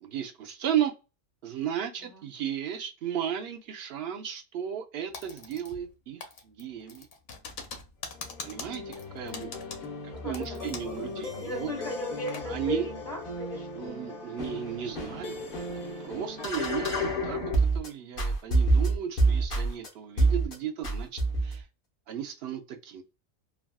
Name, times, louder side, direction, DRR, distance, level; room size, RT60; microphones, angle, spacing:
voice 1, 0.0-0.9 1.4-7.1 8.4-9.5 10.0-11.7 12.5-12.9 13.8-15.4 16.0-17.4 17.7-21.7 22.1-23.0, right 9 dB, 65° right, 3 dB, 0.7 m, -34 dB
Typing, 5.1-5.9 6.2-11.0 11.3-11.4 11.9-12.5, left 5 dB, 85° left, 1.1 m, -42 dB
sound 1, 8.1-17.9 18.2-19.9 20.2-20.5 20.8-21.6, right 2 dB, 45° left, 1.0 m, -30 dB
voice 2, 10.0-14.0, left 2 dB, 25° left, -6 dB, 1.5 m, -37 dB
3.3 x 2.4 x 2.2 m, 0.30 s
omnidirectional pair, 1.4 m